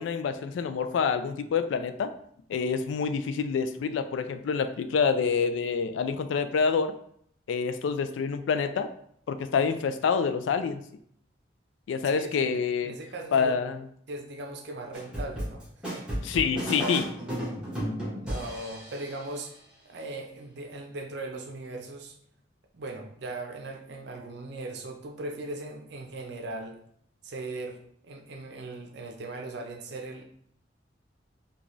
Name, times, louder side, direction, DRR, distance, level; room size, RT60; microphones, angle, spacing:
voice 1, 0.0-2.1 2.5-6.9 7.5-8.9 9.3-10.8 11.9-12.9 13.3-13.8 16.2-17.1, left 5 dB, 85° left, 10 dB, 0.3 m, -27 dB
voice 2, 12.0-13.6 14.1-15.6 15.9-16.1 18.2-19.5 19.9-22.2 22.7-26.8 27.2-30.2, right 2 dB, 65° right, 4 dB, 0.5 m, -39 dB
sound 1, 14.9-19.3, equal, 5° right, 1.2 m, -33 dB
3.8 x 2.3 x 3.0 m, 0.67 s
head